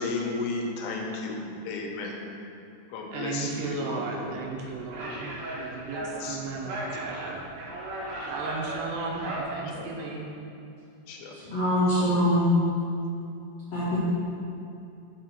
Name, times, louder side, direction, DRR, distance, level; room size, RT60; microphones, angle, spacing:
voice 1, 0.0-2.2 2.9-4.4 6.0-6.6 9.7-9.9 11.1-11.3, left 3 dB, 85° left, 1 dB, 3.0 m, -34 dB
voice 2, 3.1-7.4 8.2-10.3, right 3 dB, 80° right, -1 dB, 2.7 m, -35 dB
sound 1, 4.2-9.4, right 1 dB, 65° right, 2.4 m, -37 dB
voice 3, 11.5-12.5 13.7-14.0, equal, 65° left, -11 dB, 1.6 m, -23 dB
7.2 x 5.1 x 6.1 m, 2.7 s
omnidirectional pair, 5.1 m